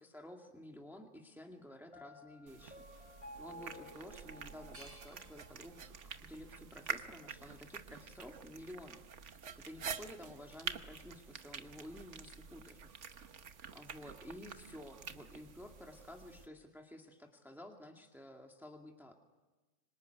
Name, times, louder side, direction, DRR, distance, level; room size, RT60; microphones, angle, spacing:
voice 1, 0.0-5.8 6.2-12.8 13.1-13.2 13.7-19.1, left 1 dB, ahead, 2 dB, 2.2 m, -52 dB
Piano, 1.9-5.8, equal, 25° left, 4.9 m, -54 dB
sound 1, 2.5-16.5, right 7 dB, 70° right, 1.4 m, -48 dB
sound 2, 4.7-7.7 8.2-9.0, equal, 50° right, 4.1 m, -63 dB
26.0 x 24.0 x 9.3 m, 1.2 s
omnidirectional pair, 1.3 m